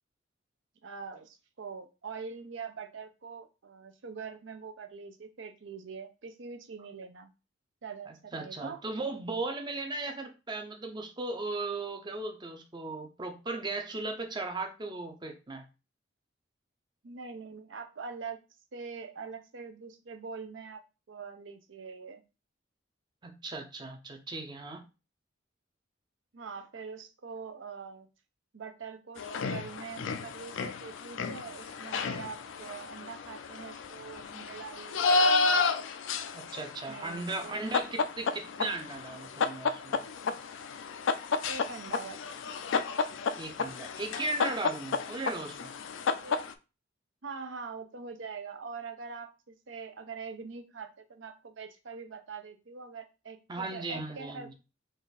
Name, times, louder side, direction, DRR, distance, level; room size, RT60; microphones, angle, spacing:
voice 1, 0.8-7.3 7.8-8.8 17.0-18.4 18.7-20.8 21.1-22.2 26.3-28.1 28.5-35.4 36.9-37.6 41.5-42.2 46.2-46.5 47.2-54.5, right 5 dB, 75° right, 8 dB, 0.6 m, -43 dB
voice 2, 8.1-15.6 23.2-24.8 36.3-40.0 43.4-45.7 53.5-54.5, right 2 dB, 25° right, 4 dB, 0.6 m, -37 dB
sound 1, 29.2-46.5, left 4 dB, 80° left, 0.4 m, -32 dB
3.8 x 2.5 x 4.0 m, 0.30 s
head